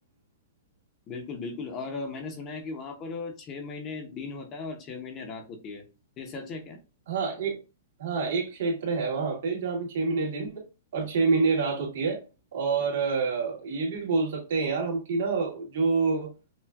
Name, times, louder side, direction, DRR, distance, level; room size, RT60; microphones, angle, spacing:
voice 1, 1.1-5.8 6.2-6.8, left 4 dB, 25° left, 0.8 m, -37 dB
voice 2, 7.1-7.6 8.0-10.6 10.9-12.2 12.5-16.3, right 4 dB, 65° right, 1.9 m, -27 dB
5.7 x 2.4 x 2.4 m
hypercardioid pair, 160°, 0 cm